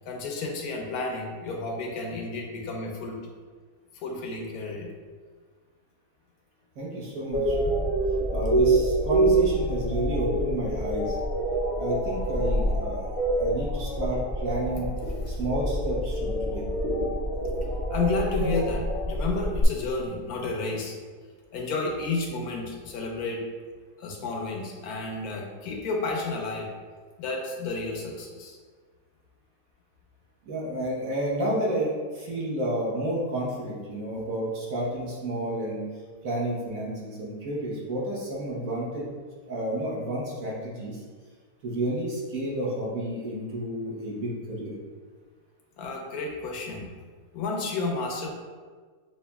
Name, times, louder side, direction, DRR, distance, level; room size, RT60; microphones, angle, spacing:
voice 1, 0.0-3.2 3.9-4.9 17.9-20.9 21.5-23.4 24.0-26.7 27.2-28.6 45.8-46.9 47.3-48.3, left 3 dB, 65° left, 0 dB, 1.0 m, -31 dB
voice 2, 6.8-7.8 8.3-11.2 11.8-13.1 13.4-14.9 15.3-16.7 30.4-35.9 36.2-39.1 39.5-41.0 41.6-44.8, right 1 dB, 55° right, -5 dB, 1.3 m, -30 dB
sound 1, 7.3-19.6, right 1 dB, 90° left, 0.4 m, -26 dB
6.9 x 2.5 x 2.3 m, 1.5 s
omnidirectional pair, 1.9 m